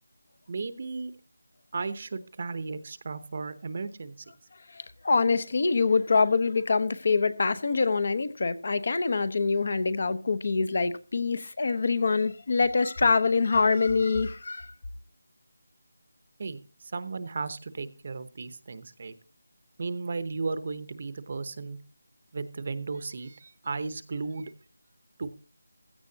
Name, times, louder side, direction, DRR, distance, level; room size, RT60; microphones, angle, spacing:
voice 1, 0.5-1.2 1.7-4.3 16.4-19.1 19.8-21.8 22.3-24.5 25.2-25.3, right 4 dB, 30° right, 0.9 m, -35 dB
voice 2, 4.7-14.7, left 4 dB, 40° left, 0.9 m, -25 dB
16.0 x 14.0 x 2.8 m
figure-of-eight pair, 175°, 0 cm